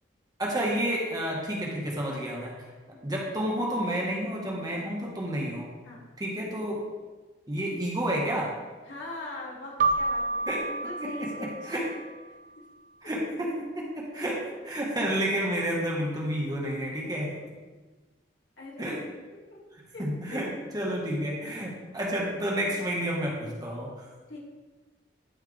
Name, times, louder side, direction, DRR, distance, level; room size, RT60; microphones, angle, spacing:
voice 1, 0.4-2.5 3.0-5.7 6.2-6.8 7.5-8.5 10.5-10.6 11.0-11.1 11.4-11.9 13.0-14.4 14.7-17.3 18.8-19.0 20.0-20.5 20.7-24.1, equal, 20° right, -3 dB, 1.4 m, -30 dB
voice 2, 8.8-11.7 12.3-12.7 17.4-17.5 18.6-18.9 19.5-19.6 19.9-20.5 24.3-24.4, left 2 dB, 75° left, -5 dB, 2.5 m, -42 dB
Keyboard (musical), 9.8-12.3, right 3 dB, 45° right, 0.4 m, -30 dB
12.5 x 4.6 x 3.4 m, 1.3 s
head